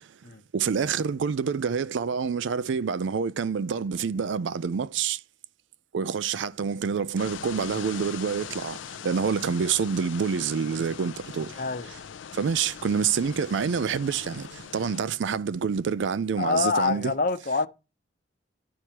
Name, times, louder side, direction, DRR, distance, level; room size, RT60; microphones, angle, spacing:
voice 1, 0.5-5.2 5.9-8.8 9.0-11.5 12.4-17.1, right 6 dB, 80° right, 0.4 m, -27 dB
sound 1, 7.2-15.0, left 8 dB, 85° left, 0.5 m, -41 dB
voice 2, 11.6-11.9 16.4-17.7, left 4 dB, 45° left, 0.7 m, -25 dB
11.5 x 4.6 x 2.9 m
head